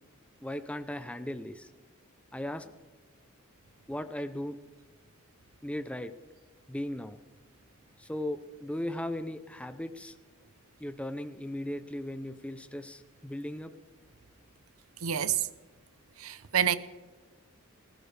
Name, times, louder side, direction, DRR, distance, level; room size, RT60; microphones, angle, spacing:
voice 1, 0.4-1.7 2.3-2.7 3.9-4.6 5.6-6.1 6.7-7.2 8.0-10.1 10.8-13.7, left 1 dB, 5° left, 0.6 m, -37 dB
voice 2, 15.0-15.5 16.2-16.8, right 9 dB, 85° right, 0.8 m, -27 dB
20.0 x 15.5 x 3.4 m
head